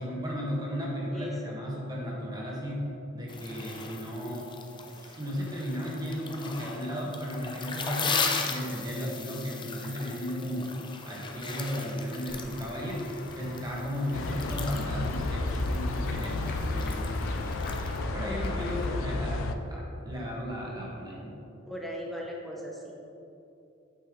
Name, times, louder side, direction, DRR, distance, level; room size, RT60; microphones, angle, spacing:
voice 1, 0.0-2.9 3.1-4.5 4.9-10.8 11.0-13.0 13.3-17.6 18.1-21.4, equal, 20° right, -4 dB, 1.5 m, -35 dB
sound 1, 3.3-18.0, left 5 dB, 25° left, 0.5 m, -38 dB
Run / Walk footsteps / Bell, 12.3-19.0, left 2 dB, 50° left, 0.8 m, -43 dB
sound 2, 14.1-19.5, left 2 dB, 85° left, 0.5 m, -32 dB
voice 2, 18.2-18.8 21.7-22.8, equal, ahead, -2 dB, 0.9 m, -38 dB
8.3 x 5.5 x 3.8 m, 2.8 s
head